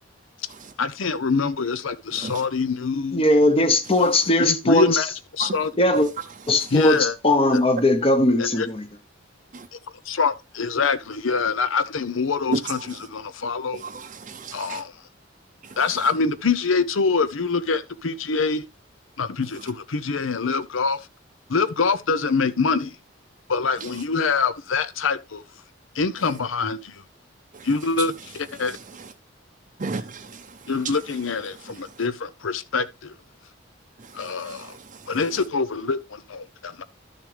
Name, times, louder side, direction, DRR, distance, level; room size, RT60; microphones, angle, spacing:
voice 1, 0.8-3.2 4.4-5.7 6.7-7.2 7.5-7.6 8.4-8.7 10.1-13.8 14.5-14.9 15.8-18.6 19.2-21.0 21.5-22.9 23.5-25.4 25.9-27.0 27.6-28.8 30.7-33.1 34.1-34.7 35.1-36.8, left 4 dB, 90° left, 0.7 m, -25 dB
voice 2, 3.1-5.0 5.8-6.1 6.5-8.9, left 1 dB, 30° left, 0.8 m, -19 dB
voice 3, 13.8-14.8 29.8-30.3 34.5-34.6, right 4 dB, 40° right, 0.6 m, -33 dB
12.0 x 6.6 x 3.3 m
head